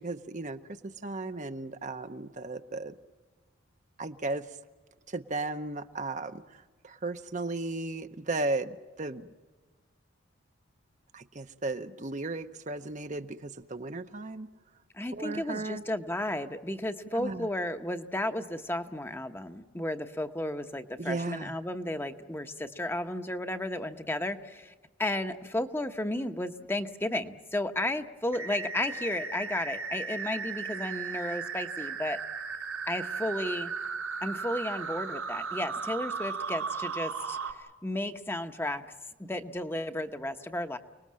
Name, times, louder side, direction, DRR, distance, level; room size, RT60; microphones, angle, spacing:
voice 1, 0.0-2.9 4.0-4.4 5.1-9.3 11.1-14.5 15.1-15.8 17.1-17.5 21.0-21.5, right 2 dB, 35° right, 8 dB, 0.8 m, -35 dB
voice 2, 14.9-24.7 25.0-32.2 32.9-33.7 34.2-38.8 39.3-40.8, left 1 dB, 10° left, 8 dB, 0.9 m, -33 dB
sound 1, 28.3-37.5, right 5 dB, 85° right, 2.3 m, -36 dB
29.5 x 20.0 x 7.5 m, 1.3 s
head